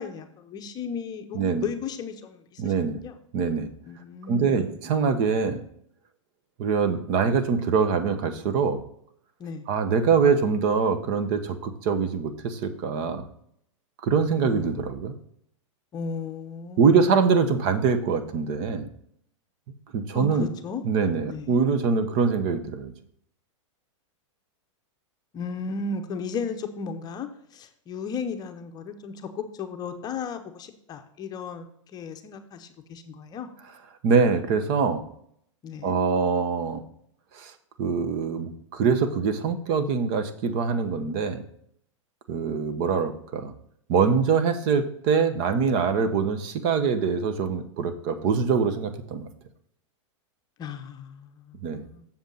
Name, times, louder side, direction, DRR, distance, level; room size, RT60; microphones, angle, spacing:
voice 1, 0.0-2.7 3.0-3.2 3.8-4.8 9.4-9.6 14.4-14.9 15.9-17.2 20.1-20.8 21.3-21.6 25.3-31.7 31.9-33.5 35.6-36.0 50.6-52.1, left 5 dB, 25° left, 6 dB, 0.8 m, -35 dB
voice 2, 2.6-3.0 3.3-3.7 4.3-5.6 6.6-8.8 9.7-13.2 14.0-15.1 16.8-18.9 19.9-20.5 20.8-22.9 34.0-35.0 35.8-36.8 37.3-37.5 37.8-41.4 42.3-43.5 43.9-49.3 51.6-51.8, right 5 dB, 45° right, 10 dB, 0.9 m, -24 dB
7.2 x 7.0 x 3.9 m, 0.70 s
hypercardioid pair, 135°, 16 cm